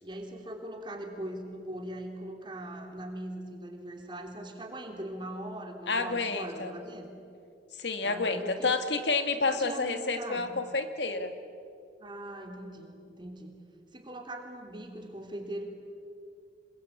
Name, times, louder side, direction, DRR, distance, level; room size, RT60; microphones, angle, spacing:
voice 1, 0.0-7.2 8.0-8.8 9.4-10.6 12.0-13.5 13.9-15.7, right 1 dB, 25° right, 3 dB, 3.2 m, -41 dB
voice 2, 5.9-6.7 7.8-11.3, left 3 dB, 80° left, 8 dB, 2.0 m, -29 dB
27.0 x 22.5 x 8.7 m, 2.5 s
head